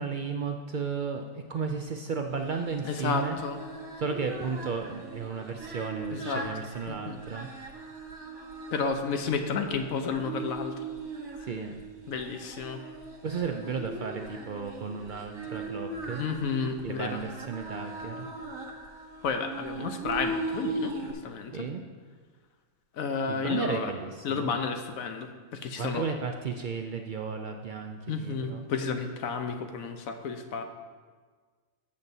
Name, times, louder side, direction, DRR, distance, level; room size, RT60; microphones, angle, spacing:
voice 1, 0.0-3.4 4.0-7.5 11.4-11.7 13.2-16.2 16.8-18.3 21.5-21.8 23.3-24.5 25.8-28.6, right 5 dB, 70° right, 4 dB, 0.4 m, -34 dB
Singing, 2.4-21.1, right 3 dB, 90° right, 1.7 m, -39 dB
voice 2, 2.8-3.6 6.1-6.5 6.9-7.2 8.7-10.8 11.4-11.5 12.1-12.8 16.2-17.2 19.2-21.5 22.9-23.9 24.2-26.0 28.1-30.6, left 5 dB, 85° left, 6 dB, 1.2 m, -32 dB
14.0 x 7.3 x 2.7 m, 1.5 s
omnidirectional pair, 1.4 m